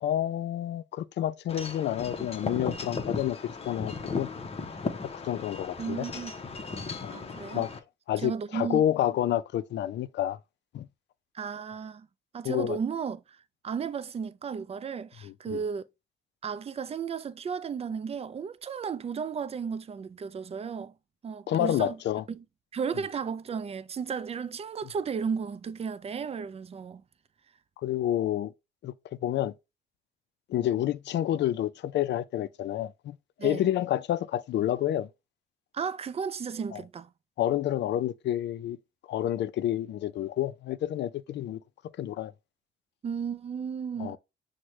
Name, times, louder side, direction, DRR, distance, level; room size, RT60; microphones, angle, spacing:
voice 1, 0.0-3.4 3.7-4.3 5.0-6.1 7.0-7.2 7.5-7.7 8.1-10.4 10.7-10.9 12.4-12.8 15.2-15.6 21.5-22.2 27.8-28.5 28.8-28.9 29.2-29.5 30.5-35.1 36.7-36.8 37.4-38.8 39.1-41.6 42.0-42.3 44.0-44.2, left 12 dB, 60° left, 0.4 m, -29 dB
Wind chime / Wind, 1.5-7.8, left 4 dB, 30° left, 0.7 m, -36 dB
voice 2, 5.8-6.3 7.1-7.6 8.2-8.8 11.3-12.1 12.3-13.4 13.6-15.8 16.4-20.9 21.2-22.0 22.3-22.4 22.7-27.0 33.4-33.7 35.7-37.1 43.0-44.2, right 6 dB, 30° right, 0.4 m, -34 dB
6.2 x 2.2 x 3.0 m
cardioid pair, 90°, 20 cm